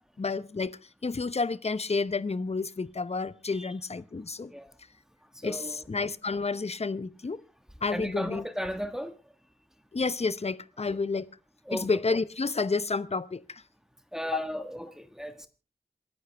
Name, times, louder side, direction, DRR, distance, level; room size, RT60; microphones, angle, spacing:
voice 1, 0.2-4.5 5.4-7.4 7.8-8.4 9.9-11.3 11.7-13.6 14.3-14.4, left 4 dB, 45° left, 0.8 m, -30 dB
voice 2, 5.3-5.9 7.9-9.1 10.9-11.0 11.7-12.0 14.1-15.5, equal, 5° right, 1.4 m, -35 dB
27.5 x 11.0 x 3.4 m
wide cardioid pair, 85°, 15 cm